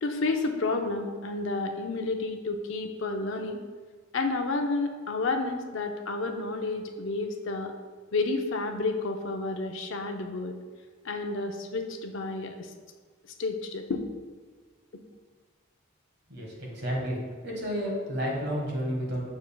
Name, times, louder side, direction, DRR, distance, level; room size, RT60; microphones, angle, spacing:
voice 1, 0.0-3.6 4.1-7.7 8.1-10.6 11.0-12.7 13.4-14.1, left 3 dB, 65° left, 5 dB, 0.5 m, -30 dB
voice 2, 16.3-19.2, equal, 50° right, -2 dB, 1.5 m, -31 dB
7.1 x 6.3 x 2.3 m, 1.5 s
head